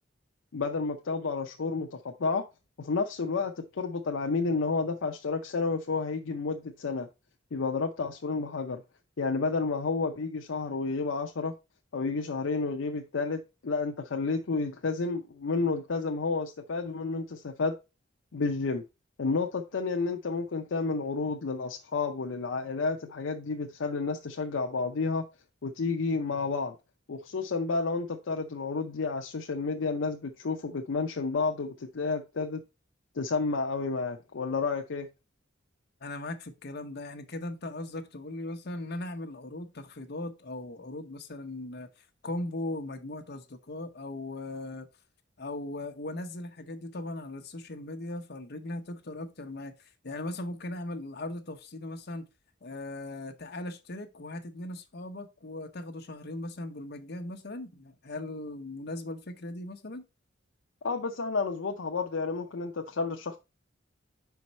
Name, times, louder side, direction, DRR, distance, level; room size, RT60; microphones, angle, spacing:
voice 1, 0.5-2.4 2.8-7.1 7.5-8.8 9.2-11.5 11.9-17.7 18.3-18.8 19.2-25.2 25.6-26.8 27.1-32.6 33.2-35.1 60.8-63.4, left 4 dB, 75° left, 0.6 m, -31 dB
voice 2, 36.0-44.9 45.4-52.2 52.6-60.1, left 2 dB, 60° left, 0.9 m, -38 dB
5.3 x 4.6 x 4.1 m
head